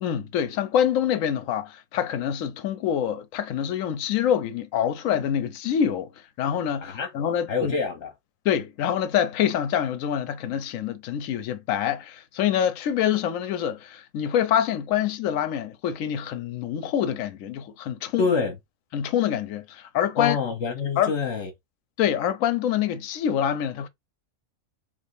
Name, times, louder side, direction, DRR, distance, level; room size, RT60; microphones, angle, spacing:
voice 1, 0.0-6.1 6.4-7.8 8.4-18.3 18.9-20.4 21.0-21.1 22.0-23.9, left 9 dB, 85° left, 1.0 m, -26 dB
voice 2, 6.8-7.1 7.5-8.1 18.2-18.6 20.2-21.5, left 5 dB, 65° left, 1.2 m, -26 dB
3.5 x 3.4 x 2.6 m
omnidirectional pair, 1.3 m